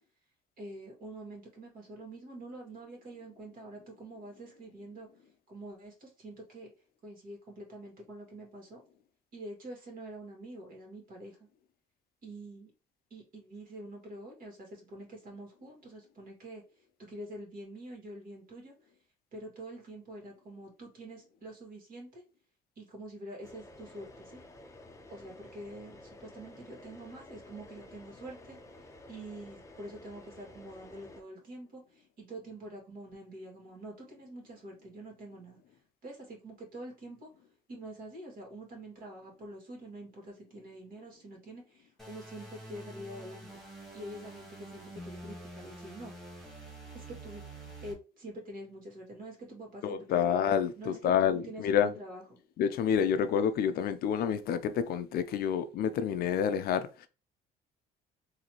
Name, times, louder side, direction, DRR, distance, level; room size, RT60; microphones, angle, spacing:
voice 1, 0.6-5.1 5.5-6.7 7.0-8.8 9.3-11.4 12.2-12.7 13.1-16.6 17.0-18.7 19.3-22.2 22.8-24.4 25.1-28.6 29.1-35.6 36.0-37.3 37.7-43.5 43.9-46.1 46.9-47.4 47.8-50.4 50.8-52.4, right 1 dB, 60° right, 2.0 m, -46 dB
sound 1, 23.4-31.2, left 1 dB, 20° left, 0.6 m, -52 dB
sound 2, 42.0-47.9, right 1 dB, ahead, 1.5 m, -47 dB
voice 2, 49.8-51.9 52.6-57.1, left 8 dB, 70° left, 0.5 m, -28 dB
4.0 x 2.7 x 3.0 m
cardioid pair, 115°, 16 cm